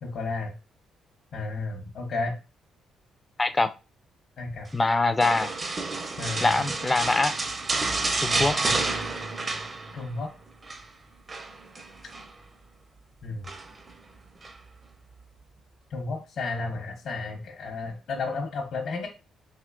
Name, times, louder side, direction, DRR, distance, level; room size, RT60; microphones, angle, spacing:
voice 1, 0.0-0.5 1.3-2.4 4.4-4.7 6.2-6.6 8.3-8.8 9.9-10.3 13.2-13.5 15.9-19.1, left 3 dB, 70° left, 0.9 m, -32 dB
voice 2, 3.4-3.7 4.7-5.5 6.4-7.3 8.2-8.6, left 3 dB, 20° left, 0.3 m, -23 dB
sound 1, 5.2-10.2 10.5-10.8 11.3-12.3 13.4-13.9 14.4-14.6, right 3 dB, 30° right, 0.5 m, -30 dB
3.6 x 2.8 x 2.4 m
cardioid pair, 90°, 0 cm